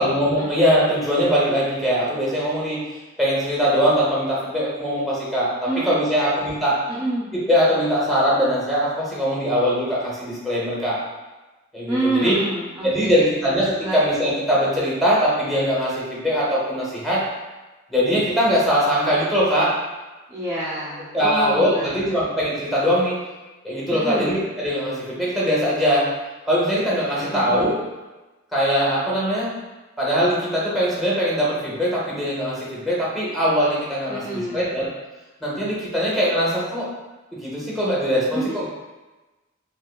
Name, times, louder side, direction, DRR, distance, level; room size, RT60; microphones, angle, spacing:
voice 1, 0.0-2.8 3.2-6.8 7.3-11.0 11.7-12.4 12.8-17.2 17.9-19.7 21.1-23.2 23.6-26.1 26.5-27.8 28.5-29.5 30.0-34.9 35.4-36.9 37.3-38.7, equal, ahead, -7 dB, 0.8 m, -21 dB
voice 2, 5.7-6.5 6.9-7.3 11.9-13.4 13.8-14.0 20.3-21.9 23.9-24.3 27.2-27.6 34.1-34.8 38.3-38.4, right 1 dB, 15° right, -8 dB, 0.4 m, -28 dB
3.5 x 2.4 x 2.3 m, 1.1 s
head